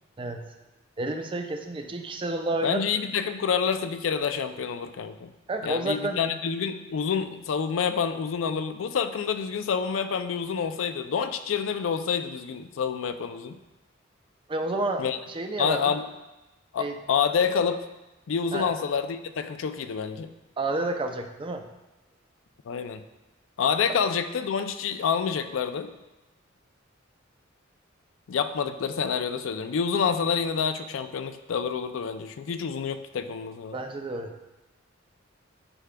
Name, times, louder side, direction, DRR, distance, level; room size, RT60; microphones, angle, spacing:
voice 1, 1.0-2.8 5.5-6.2 14.5-15.9 16.8-17.0 18.5-18.7 20.6-21.7 33.7-34.3, right 2 dB, 25° right, 5 dB, 0.4 m, -30 dB
voice 2, 2.6-5.3 5.6-13.6 15.0-15.2 15.6-16.1 16.7-17.8 18.3-20.3 22.7-23.0 23.6-25.9 28.3-33.8, left 6 dB, 70° left, 9 dB, 0.4 m, -28 dB
9.8 x 4.9 x 2.2 m, 1.0 s
head